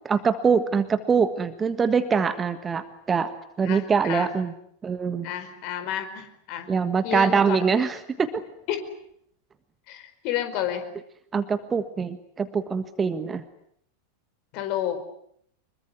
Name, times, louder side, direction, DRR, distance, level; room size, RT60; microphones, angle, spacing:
voice 1, 0.0-3.3 3.6-4.5 4.8-5.3 6.7-8.4 11.3-13.4, right 5 dB, 20° right, 11 dB, 1.6 m, -24 dB
voice 2, 3.6-4.3 5.2-6.7 7.0-7.6 8.7-8.8 9.9-10.9 14.5-15.0, left 11 dB, 45° left, 9 dB, 4.7 m, -30 dB
25.5 x 23.0 x 9.4 m, 0.71 s
figure-of-eight pair, 90°, 0 cm